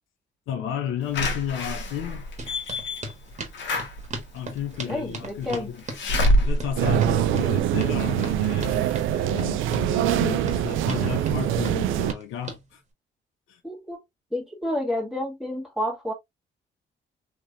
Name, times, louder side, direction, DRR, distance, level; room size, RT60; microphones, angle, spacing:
voice 1, 0.5-2.3 4.3-5.8 6.3-12.8 13.5-13.6, left 9 dB, 90° left, 0.8 m, -32 dB
Slam / Alarm, 1.1-8.0 8.4-8.5 8.8-8.9, equal, 70° left, 1.3 m, -27 dB
sound 1, 2.4-12.6, right 2 dB, 35° right, 1.4 m, -38 dB
voice 2, 4.9-5.7 13.6-14.0 14.3-16.1, left 1 dB, ahead, 1.9 m, -30 dB
sound 2, 6.8-12.1, right 12 dB, 85° right, 0.4 m, -24 dB
3.3 x 3.0 x 2.6 m
cardioid pair, 90°, 20 cm